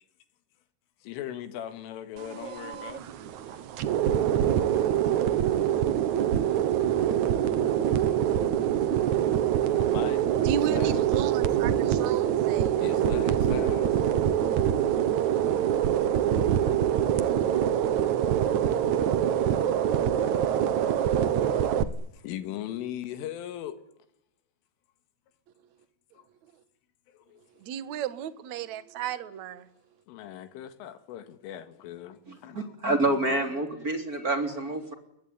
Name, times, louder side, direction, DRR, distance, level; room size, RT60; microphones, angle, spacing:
voice 1, 1.0-3.0 9.8-10.2 10.7-11.1 12.8-14.0 21.8-23.8 26.1-26.2 27.1-27.4 30.1-32.7, left 11 dB, 80° left, 4.5 m, -39 dB
sound 1, 2.2-21.8, right 10 dB, 85° right, 1.6 m, -25 dB
voice 2, 10.2-13.0 27.6-29.7, right 9 dB, 60° right, 1.9 m, -34 dB
voice 3, 32.3-34.9, right 2 dB, 20° right, 3.1 m, -28 dB
27.0 x 22.0 x 9.6 m
omnidirectional pair, 5.7 m